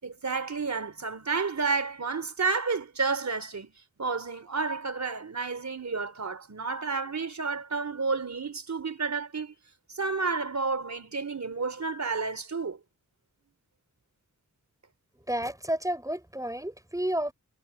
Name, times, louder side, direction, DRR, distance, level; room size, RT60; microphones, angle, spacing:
voice 1, 0.0-3.7 4.0-9.5 9.9-12.8, right 4 dB, 60° right, 3.9 m, -31 dB
voice 2, 15.3-17.3, right 1 dB, 10° right, 7.5 m, -31 dB
wide cardioid pair, 70°, 32 cm